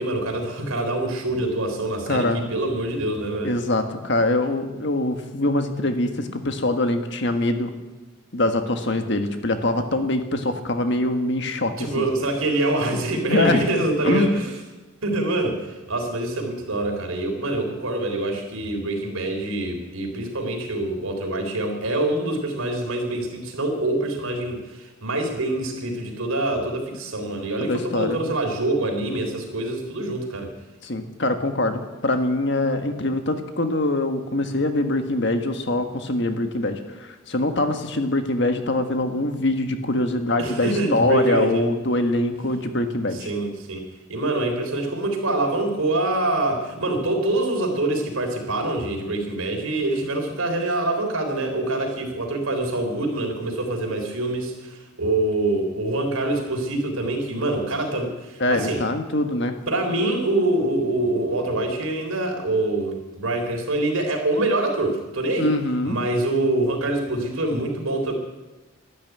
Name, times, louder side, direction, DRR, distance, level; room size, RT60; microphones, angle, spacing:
voice 1, 0.0-3.5 11.8-14.5 15.0-30.5 40.4-41.6 43.1-58.8 59.7-65.5 65.8-68.1, right 2 dB, 80° right, 3 dB, 3.8 m, -25 dB
voice 2, 2.1-2.5 3.4-7.7 8.3-12.1 13.3-13.7 14.0-14.4 27.7-28.3 30.8-43.3 58.4-59.6 65.4-66.0, left 2 dB, 55° left, 7 dB, 1.6 m, -23 dB
13.0 x 12.0 x 9.4 m, 1.1 s
head